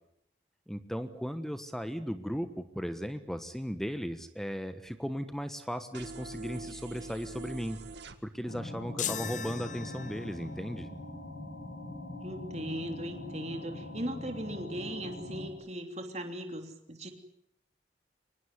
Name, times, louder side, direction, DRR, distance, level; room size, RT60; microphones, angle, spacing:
voice 1, 0.7-7.8 8.2-10.9, equal, ahead, 10 dB, 1.2 m, -36 dB
sound 1, 5.9-8.2, right 3 dB, 65° right, 1.8 m, -43 dB
sound 2, 8.4-15.5, left 2 dB, 60° left, 5.4 m, -42 dB
sound 3, 9.0-10.5, left 9 dB, 40° left, 1.0 m, -38 dB
voice 2, 12.2-17.1, right 1 dB, 35° right, 5 dB, 3.2 m, -38 dB
25.0 x 20.0 x 9.6 m, 0.73 s
head